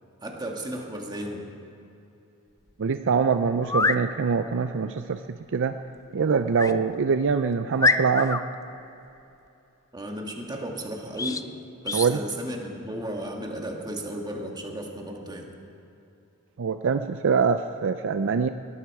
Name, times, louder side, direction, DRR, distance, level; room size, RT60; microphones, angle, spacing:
voice 1, 0.2-1.4 9.9-11.4 11.8-15.5, right 1 dB, 20° right, 1 dB, 1.8 m, -34 dB
sound 1, 2.7-2.8 3.6-4.0 6.5-6.8 7.3-7.4 7.8-8.4 11.1-11.4 11.8-12.1, left 3 dB, 15° left, 0.4 m, -25 dB
voice 2, 2.8-5.2 5.5-5.7 6.1-8.4 11.9-12.2 16.6-18.5, right 5 dB, 60° right, 9 dB, 0.5 m, -24 dB
21.0 x 13.0 x 4.8 m, 2.8 s
head